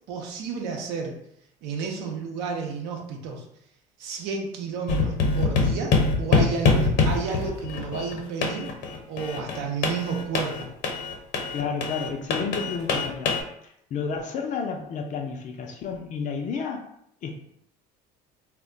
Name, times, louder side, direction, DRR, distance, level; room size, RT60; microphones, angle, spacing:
voice 1, 0.1-1.2 1.6-3.4 4.0-8.7 9.1-10.7, right 5 dB, 75° right, 1 dB, 0.7 m, -31 dB
sound 1, 4.9-13.4, left 4 dB, 65° left, 0.8 m, -24 dB
voice 2, 11.5-13.3 13.6-16.9 17.2-17.4, left 5 dB, 45° left, 2 dB, 0.4 m, -31 dB
2.2 x 2.1 x 3.7 m, 0.73 s
cardioid pair, 115°, 18 cm